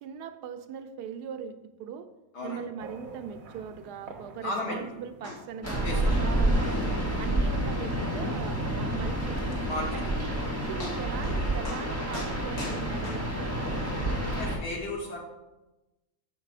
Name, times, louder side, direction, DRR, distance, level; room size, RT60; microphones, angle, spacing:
voice 1, 0.0-2.1 2.4-6.8 7.2-9.5 9.9-13.8, right 7 dB, 80° right, 9 dB, 1.2 m, -40 dB
sound 1, 2.8-7.6, right 3 dB, 60° right, 1.3 m, -48 dB
voice 2, 4.4-4.8 5.8-6.2 9.6-10.1 14.4-15.2, left 2 dB, 85° left, -1 dB, 2.3 m, -34 dB
sound 2, 5.2-5.4 5.7-5.8 6.1-6.3 6.5-6.7 7.1-7.2 7.6-7.7 8.1-8.2 9.9-10.0 10.4-10.5 10.8-11.4 11.6-11.8 12.1-13.6 14.3-14.4, left 2 dB, 65° left, 2.3 m, -41 dB
sound 3, 5.6-14.6, right 1 dB, 10° left, 1.4 m, -29 dB
6.6 x 6.0 x 4.7 m, 1.0 s
omnidirectional pair, 1.7 m